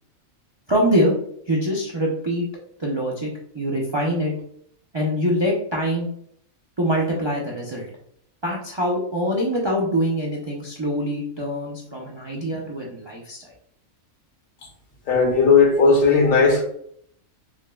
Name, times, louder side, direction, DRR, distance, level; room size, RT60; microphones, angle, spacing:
voice 1, 0.7-1.1 1.5-2.5 2.8-3.3 3.5-4.3 4.9-6.1 6.8-7.9 8.4-13.4, equal, 45° right, -2 dB, 0.3 m, -24 dB
voice 2, 15.1-16.6, left 4 dB, 75° left, 1 dB, 1.3 m, -16 dB
6.2 x 2.1 x 2.2 m, 0.65 s
omnidirectional pair, 1.4 m